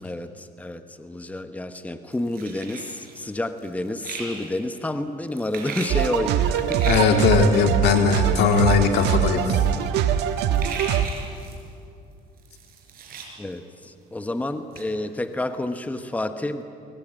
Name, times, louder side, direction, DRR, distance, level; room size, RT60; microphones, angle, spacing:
voice 1, 0.0-7.0 13.4-16.6, left 1 dB, 10° left, 9 dB, 1.1 m, -30 dB
sound 1, 2.1-3.2 3.6-4.6 5.3-6.1 6.6-7.1 8.1-8.2 8.4-9.1 9.4-9.7 10.0-10.1 10.3-11.7 12.4-13.3 13.7-13.8 14.2-14.3 14.7-14.9 15.4-15.5, right 5 dB, 60° right, 5.3 m, -37 dB
sound 2, 5.9-11.1, right 9 dB, 85° right, 1.4 m, -23 dB
voice 2, 6.9-9.6, left 6 dB, 75° left, 5 dB, 2.1 m, -19 dB
23.5 x 18.5 x 9.0 m, 2.5 s
cardioid pair, 110°, 17 cm